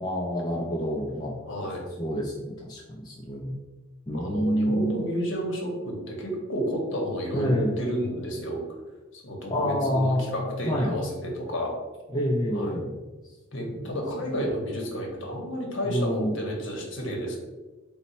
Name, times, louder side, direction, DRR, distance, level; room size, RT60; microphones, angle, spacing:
voice 1, 0.0-1.7 2.0-3.6 4.1-4.9 7.3-7.7 9.5-10.2 10.6-11.0 12.1-12.9 13.5-13.9 14.2-14.4 15.8-16.4, equal, 20° left, -3 dB, 0.4 m, -27 dB
voice 2, 1.5-1.8 4.1-8.7 9.1-11.7 12.5-12.8 13.5-17.4, equal, 60° left, 0 dB, 0.9 m, -31 dB
4.1 x 2.1 x 4.1 m, 1.2 s
head